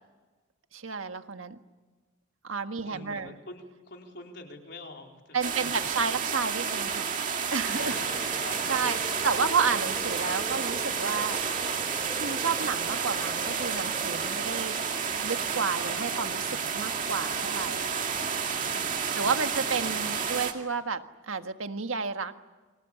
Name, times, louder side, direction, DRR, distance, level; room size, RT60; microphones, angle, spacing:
voice 1, 0.7-1.6 2.4-3.3 5.3-7.2 7.5-8.4 8.7-11.4 12.2-14.8 15.2-17.9 18.7-22.3, right 5 dB, 80° right, 7 dB, 1.6 m, -31 dB
voice 2, 2.8-5.9 7.7-9.4 18.5-19.7, left 2 dB, 55° left, 2 dB, 4.2 m, -46 dB
sound 1, 5.4-20.5, right 6 dB, 40° right, 2.3 m, -31 dB
sound 2, 7.6-20.3, equal, ahead, 3.5 m, -43 dB
29.0 x 25.5 x 7.1 m, 1.3 s
head